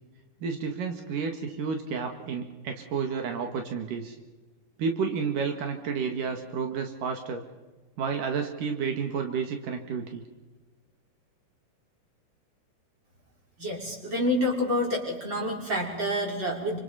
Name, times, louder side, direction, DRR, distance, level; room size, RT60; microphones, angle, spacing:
voice 1, 0.4-4.2 4.8-7.4 8.0-10.2, right 5 dB, 80° right, 4 dB, 3.5 m, -31 dB
voice 2, 13.6-16.8, left 1 dB, 35° right, -1 dB, 6.7 m, -28 dB
29.5 x 26.5 x 5.8 m, 1.2 s
omnidirectional pair, 3.8 m